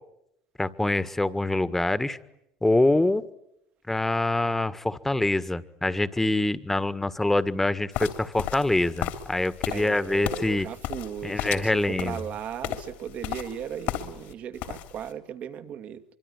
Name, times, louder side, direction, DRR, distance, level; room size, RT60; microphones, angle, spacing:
voice 1, 0.6-2.2 2.6-3.3 3.9-10.7 11.2-12.2, left 2 dB, 10° left, 1.7 m, -25 dB
sound 1, 7.9-14.3 14.6-15.1, left 12 dB, 65° left, 3.2 m, -34 dB
voice 2, 9.7-16.0, right 9 dB, 55° right, 2.2 m, -37 dB
25.0 x 24.0 x 9.8 m
hypercardioid pair, 80°, 3 cm